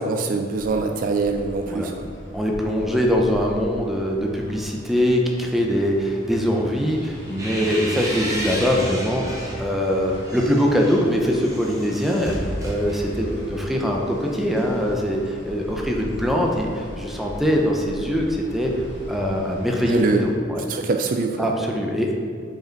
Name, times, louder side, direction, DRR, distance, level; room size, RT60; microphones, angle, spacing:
voice 1, 0.1-2.1 19.9-20.3 20.7-21.4, right 4 dB, 45° right, 5 dB, 0.4 m, -24 dB
sound 1, 0.5-20.3, equal, 65° left, 1.3 m, -39 dB
voice 2, 2.3-18.7 19.1-20.6 21.4-22.1, equal, ahead, -1 dB, 0.6 m, -22 dB
sound 2, 7.0-9.6 10.1-13.4, right 1 dB, 20° right, 1.0 m, -32 dB
5.1 x 5.0 x 4.5 m, 2.2 s
head